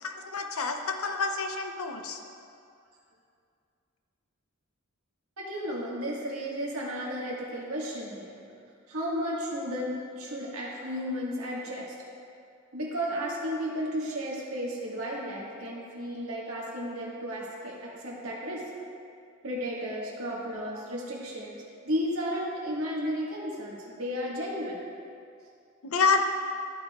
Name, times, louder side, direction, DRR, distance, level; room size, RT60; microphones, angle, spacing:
voice 1, 0.0-2.2 25.8-26.2, left 5 dB, 80° left, 5 dB, 0.6 m, -28 dB
voice 2, 5.4-8.4 8.9-11.9 12.7-18.6 19.4-24.8, equal, 85° right, -4 dB, 1.6 m, -33 dB
12.5 x 5.4 x 2.4 m, 2.4 s
head